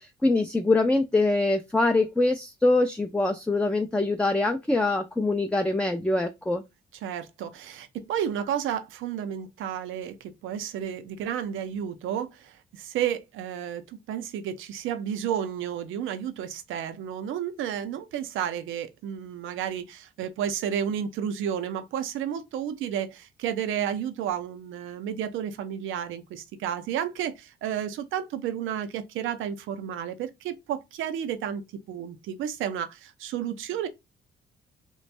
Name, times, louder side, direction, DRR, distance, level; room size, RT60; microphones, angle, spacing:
voice 1, 0.0-6.6, left 2 dB, 5° left, 0.4 m, -24 dB
voice 2, 7.0-31.6 31.9-33.9, right 9 dB, 85° right, 0.6 m, -32 dB
3.1 x 2.5 x 3.2 m
cardioid pair, 90°, 20 cm